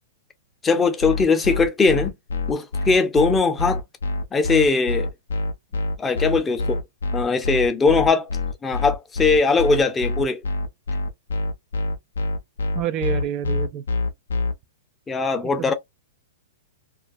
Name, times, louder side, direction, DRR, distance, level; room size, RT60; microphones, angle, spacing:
voice 1, 0.6-2.1 2.5-3.8 4.3-5.1 6.0-6.8 7.1-8.3 8.6-10.4 15.1-15.7, left 4 dB, 15° left, 0.5 m, -20 dB
sound 1, 1.0-14.5, left 3 dB, 80° left, 0.5 m, -25 dB
voice 2, 12.7-13.8 15.4-15.7, right 9 dB, 40° right, 0.3 m, -28 dB
2.4 x 2.3 x 2.5 m
hypercardioid pair, 115°, 0 cm